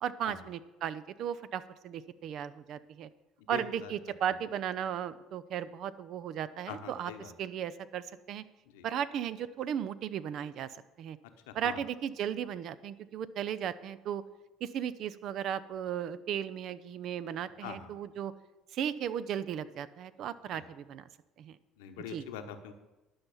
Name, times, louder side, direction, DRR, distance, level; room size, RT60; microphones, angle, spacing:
voice 1, 0.0-3.1 3.5-7.1 7.4-8.4 8.8-10.7 11.0-11.2 11.5-14.2 14.6-18.3 18.7-21.1 21.4-21.6 22.1-22.2, right 9 dB, 60° right, 15 dB, 0.5 m, -36 dB
voice 2, 3.5-3.9 6.7-7.3 8.7-8.9 11.5-11.8 17.6-17.9 20.5-20.6 21.8-22.7, left 8 dB, 80° left, 7 dB, 1.0 m, -43 dB
11.0 x 5.7 x 6.9 m, 1.1 s
hypercardioid pair, 60°, 0 cm